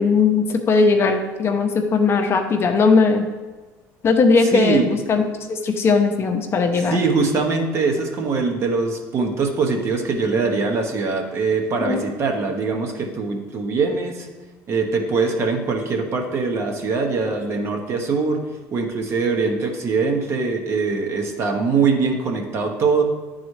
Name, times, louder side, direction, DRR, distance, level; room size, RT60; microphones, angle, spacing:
voice 1, 0.0-3.3 4.0-5.2 5.5-7.0 11.9-12.0, left 4 dB, 40° left, 4 dB, 0.7 m, -18 dB
voice 2, 4.5-4.9 6.9-14.3 14.7-18.4 18.7-23.0, right 4 dB, 45° right, 3 dB, 1.0 m, -22 dB
9.7 x 4.0 x 3.2 m, 1.3 s
supercardioid pair, 105°, 7 cm